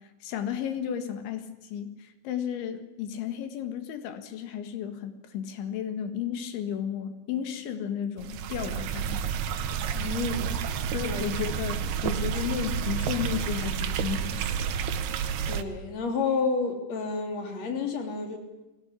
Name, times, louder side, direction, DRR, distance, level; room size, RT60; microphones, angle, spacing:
voice 1, 0.2-9.3 10.9-14.5, left 9 dB, 85° left, 9 dB, 4.1 m, -33 dB
sound 1, 8.2-15.6, right 7 dB, 70° right, 3.0 m, -30 dB
voice 2, 9.9-11.2 15.5-18.4, left 4 dB, 40° left, 5 dB, 4.1 m, -30 dB
22.0 x 17.5 x 9.9 m, 1.0 s
omnidirectional pair, 5.2 m